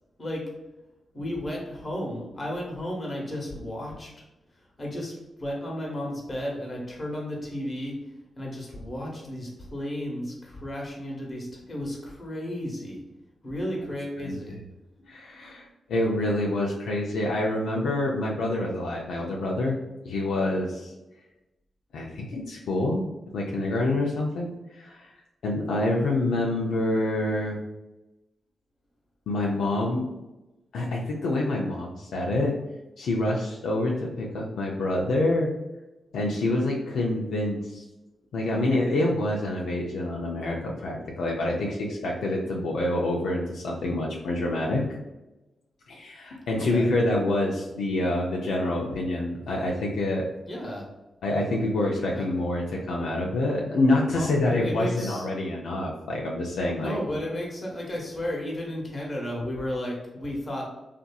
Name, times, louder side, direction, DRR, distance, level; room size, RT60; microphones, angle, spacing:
voice 1, 0.2-0.5 1.1-4.1 4.8-7.9 8.4-13.0 13.4-14.6 46.6-46.8 50.4-50.9 52.1-52.2 54.1-55.3 56.8-60.7, left 1 dB, 40° left, -2 dB, 1.0 m, -33 dB
voice 2, 14.2-14.6 15.1-19.8 20.0-20.9 21.9-23.0 23.3-25.1 25.4-27.6 29.3-30.1 30.7-32.5 33.0-35.5 36.1-37.8 38.3-44.8 45.9-50.2 51.2-57.0, left 1 dB, 85° left, -2 dB, 0.4 m, -27 dB
2.7 x 2.5 x 2.2 m, 1.0 s
cardioid pair, 50°, 0 cm